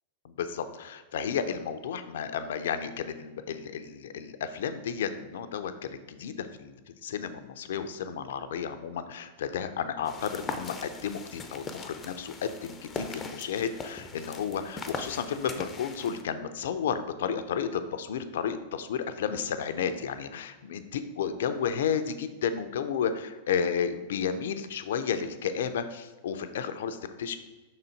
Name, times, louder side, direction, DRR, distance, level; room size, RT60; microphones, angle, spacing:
voice 1, 0.2-27.4, left 7 dB, 70° left, 10 dB, 0.5 m, -32 dB
sound 1, 10.0-16.2, left 3 dB, 20° left, 0.6 m, -40 dB
5.4 x 4.0 x 4.5 m, 1.2 s
hypercardioid pair, 110°, 0 cm